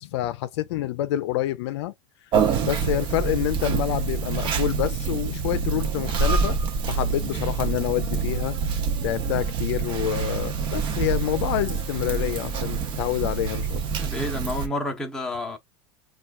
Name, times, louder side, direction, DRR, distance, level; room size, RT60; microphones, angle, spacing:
voice 1, 0.0-1.9 2.6-6.6 6.9-13.8, left 13 dB, 80° left, 0.5 m, -27 dB
Conversation, 2.3-14.7, right 5 dB, 35° right, 0.6 m, -26 dB
voice 2, 14.0-15.6, left 1 dB, 5° left, 0.8 m, -30 dB
4.3 x 2.4 x 2.4 m
supercardioid pair, 140°, 14 cm